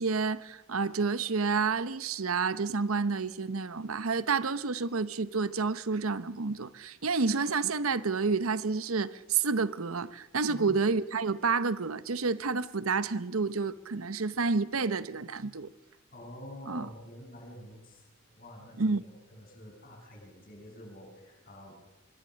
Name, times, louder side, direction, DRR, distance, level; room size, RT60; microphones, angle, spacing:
voice 1, 0.0-15.7 16.7-16.9 18.8-19.0, right 4 dB, 90° right, 0.9 m, -29 dB
voice 2, 16.1-21.7, equal, 40° left, 7.9 m, -48 dB
25.0 x 22.0 x 6.4 m
head